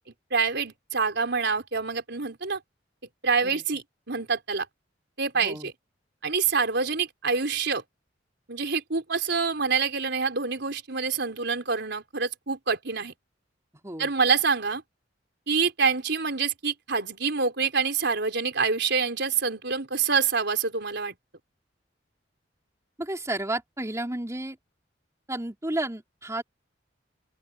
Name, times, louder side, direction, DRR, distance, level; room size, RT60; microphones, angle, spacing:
voice 1, 0.3-2.6 3.2-4.7 5.2-5.7 6.2-7.8 8.5-13.1 14.0-14.8 15.5-21.1, right 5 dB, 65° right, 4.6 m, -26 dB
voice 2, 5.3-5.7 13.8-14.1 23.0-24.6 25.3-26.4, right 1 dB, 15° right, 3.5 m, -32 dB
open air
head